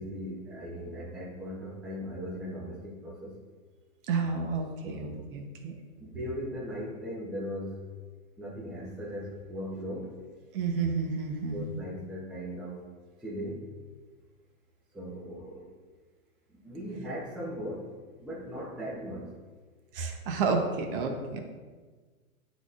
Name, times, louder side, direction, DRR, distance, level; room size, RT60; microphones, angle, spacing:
voice 1, 0.0-3.4 4.8-5.3 6.0-7.8 8.4-10.2 11.5-12.8 13.2-13.7 14.9-15.7 16.6-17.9 18.2-19.3, equal, ahead, -7 dB, 0.6 m, -38 dB
voice 2, 4.1-5.7 10.5-11.6 19.9-21.4, right 4 dB, 40° right, 3 dB, 0.9 m, -30 dB
9.6 x 4.1 x 2.4 m, 1.4 s
hypercardioid pair, 145°, 43 cm